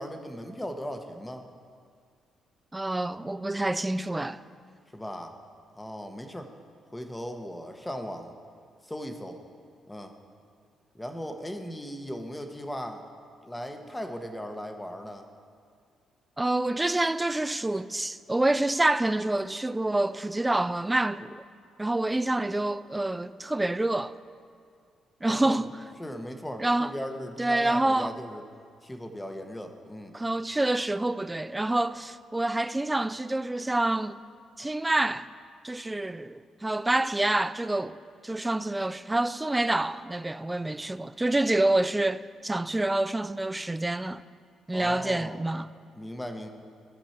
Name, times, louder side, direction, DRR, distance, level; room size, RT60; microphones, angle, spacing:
voice 1, 0.0-1.5 4.9-5.4 5.8-6.5 6.9-8.3 8.8-9.4 9.9-10.1 10.9-13.0 13.4-15.3 25.3-25.6 26.0-28.4 28.8-30.1 44.7-45.4 45.9-46.5, equal, 10° left, 0.9 m, -37 dB
voice 2, 2.7-4.4 16.4-21.4 21.8-24.2 25.2-25.7 26.6-26.9 27.4-28.1 30.1-34.2 34.6-35.3 35.6-44.2 44.7-45.7, right 2 dB, 15° right, 0.3 m, -27 dB
15.0 x 6.1 x 4.4 m
cardioid pair, 90°, 0 cm